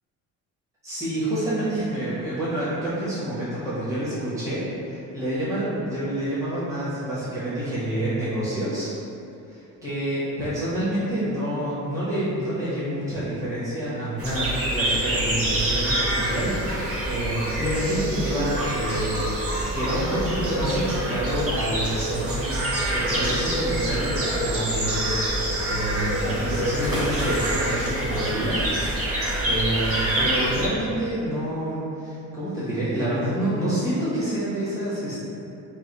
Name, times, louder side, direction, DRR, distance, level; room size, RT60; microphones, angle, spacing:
voice 1, 0.8-8.9 9.5-22.5 22.9-25.1 25.6-29.2 29.4-35.2, right 1 dB, 10° right, -12 dB, 1.0 m, -28 dB
sound 1, 14.2-30.7, right 1 dB, 45° right, 0.7 m, -26 dB
3.2 x 2.2 x 4.1 m, 2.6 s
cardioid pair, 150°, 33 cm